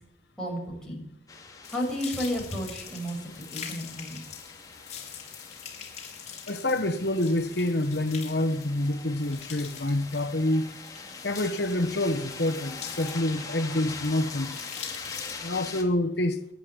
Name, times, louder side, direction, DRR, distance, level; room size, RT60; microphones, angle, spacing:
voice 1, 0.4-1.0 1.7-4.2, equal, 5° left, 7.1 m, -32 dB
sound 1, 1.3-15.8, left 4 dB, 20° left, 2.9 m, -43 dB
sound 2, 1.6-15.3, left 8 dB, 40° left, 5.7 m, -44 dB
voice 2, 6.5-10.7 11.2-14.6 15.4-16.4, left 1 dB, 70° left, 1.3 m, -27 dB
25.0 x 11.0 x 9.8 m
head